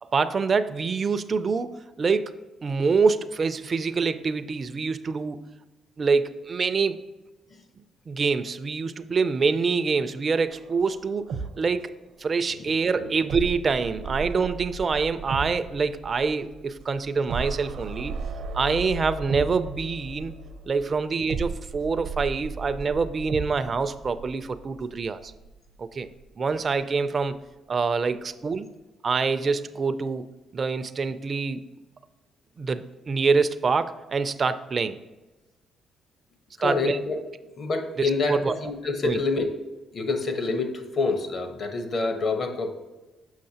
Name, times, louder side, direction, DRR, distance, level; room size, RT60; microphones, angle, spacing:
voice 1, 0.0-2.3 2.6-5.4 6.0-7.0 8.1-11.3 11.6-11.9 12.2-18.1 18.5-20.3 20.7-25.3 25.8-26.1 26.4-27.4 27.7-28.7 29.0-30.3 30.5-31.6 32.6-35.0 36.6-37.0 38.0-38.5 39.0-39.2, right 4 dB, 40° right, 10 dB, 0.4 m, -25 dB
sound 1, 10.5-12.3 12.5-12.6 13.3-25.8 26.1-26.2, right 4 dB, 80° right, 0.7 m, -36 dB
voice 2, 12.6-13.1 28.1-28.2 36.6-37.2 37.6-39.5 39.9-42.7, left 3 dB, 50° left, 5 dB, 1.0 m, -27 dB
6.5 x 5.9 x 2.8 m, 1.1 s
cardioid pair, 90°, 0 cm